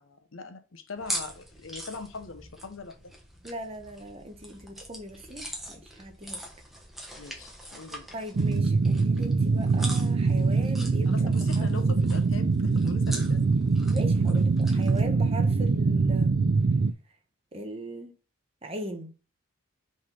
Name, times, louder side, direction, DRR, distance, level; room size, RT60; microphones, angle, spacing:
voice 1, 0.0-3.1 7.2-8.1 11.1-13.7 14.7-14.8, left 4 dB, 80° left, 0.9 m, -42 dB
sound 1, 1.0-15.0, equal, ahead, 1.1 m, -42 dB
voice 2, 3.4-6.4 8.1-11.7 13.9-14.5 14.8-16.3 17.5-18.1 18.6-19.1, equal, 30° right, 1.1 m, -39 dB
sound 2, 8.3-16.9, right 4 dB, 55° right, 0.4 m, -23 dB
5.2 x 4.0 x 5.4 m
head